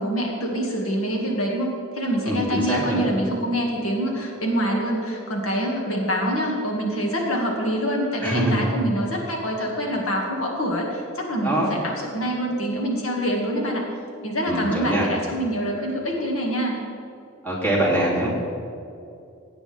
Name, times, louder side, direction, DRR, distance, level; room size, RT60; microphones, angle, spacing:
voice 1, 0.0-13.9 14.2-16.8, equal, 75° left, -2 dB, 2.2 m, -25 dB
voice 2, 2.2-3.1 8.2-8.6 11.4-11.7 14.5-15.1 17.4-18.3, right 1 dB, 10° left, -6 dB, 3.0 m, -23 dB
17.5 x 9.2 x 3.6 m, 2.5 s
head